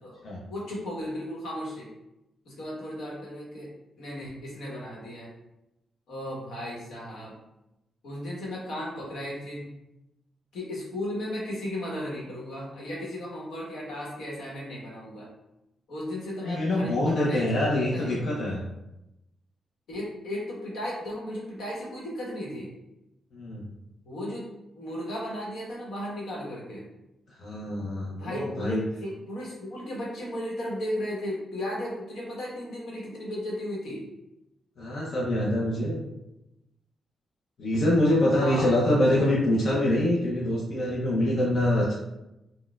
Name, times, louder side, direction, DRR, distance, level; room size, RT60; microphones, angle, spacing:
voice 1, 0.5-1.9 2.4-3.7 4.0-5.3 6.1-7.4 8.0-9.7 10.5-15.3 15.9-18.2 19.9-22.7 24.1-24.5 24.7-26.9 28.2-34.0 38.3-38.7, left 1 dB, 85° left, -4 dB, 1.0 m, -35 dB
voice 2, 16.4-18.6 23.3-23.7 27.4-28.8 34.8-36.0 37.6-41.9, left 1 dB, 50° left, -5 dB, 0.5 m, -25 dB
4.0 x 2.1 x 2.2 m, 0.92 s
wide cardioid pair, 165°, 0 cm